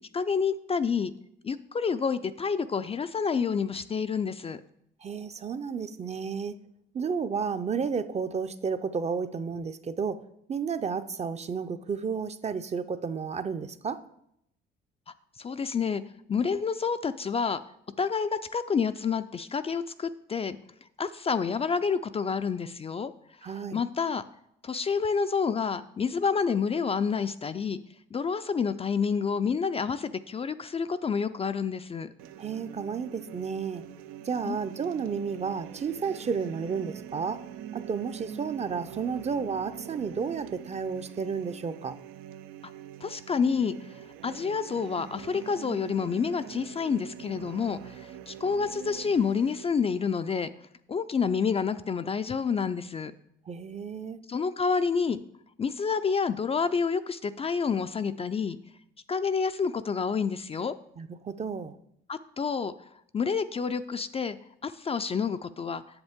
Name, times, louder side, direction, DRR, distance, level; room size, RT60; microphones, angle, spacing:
voice 1, 0.1-1.1 1.4-4.6 15.4-16.0 16.3-17.6 18.0-20.6 21.0-23.1 23.4-24.2 24.6-27.8 28.1-32.1 34.4-34.6 43.0-43.7 44.2-50.5 50.9-53.1 54.3-55.2 55.6-58.6 59.1-60.7 62.1-62.7 63.1-64.4 64.6-65.8, left 5 dB, 30° left, 11 dB, 0.4 m, -28 dB
voice 2, 5.0-6.6 6.9-10.2 10.5-14.0 23.4-23.8 32.4-33.8 34.2-37.4 37.7-42.0 53.5-54.2 61.0-61.7, right 6 dB, 30° right, 11 dB, 0.5 m, -32 dB
sound 1, 32.2-49.6, right 11 dB, 80° right, 0.5 m, -44 dB
7.9 x 7.2 x 3.6 m, 0.74 s
supercardioid pair, 75°, 21 cm